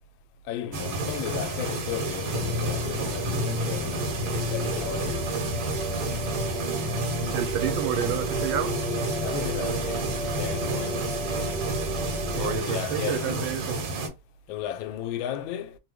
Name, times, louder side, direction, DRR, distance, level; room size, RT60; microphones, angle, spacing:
voice 1, 0.5-5.3 9.2-10.1 10.4-11.1 12.3-13.5 14.5-15.8, left 10 dB, 85° left, 1.3 m, -34 dB
sound 1, 0.7-14.1, right 3 dB, 65° right, 1.2 m, -31 dB
sound 2, 2.3-12.6, left 1 dB, 40° right, 0.8 m, -32 dB
voice 2, 7.3-8.7 12.4-13.8, right 10 dB, 85° right, 1.3 m, -30 dB
3.1 x 2.2 x 3.3 m
omnidirectional pair, 2.1 m